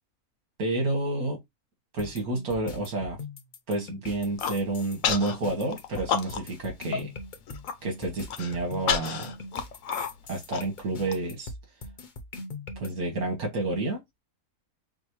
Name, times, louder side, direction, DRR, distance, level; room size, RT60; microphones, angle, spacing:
voice 1, 0.6-1.4 1.9-3.2 3.7-7.1 7.8-9.3 10.3-11.5 12.8-14.0, right 2 dB, 80° right, 2.1 m, -29 dB
sound 1, 2.0-12.9, left 3 dB, 45° left, 0.7 m, -41 dB
Human voice, 4.2-4.6 5.0-5.3 5.7-6.6 6.9-7.0 7.4-7.7 8.3-11.1, left 7 dB, 70° left, 1.0 m, -30 dB
5.9 x 2.2 x 3.0 m
omnidirectional pair, 1.6 m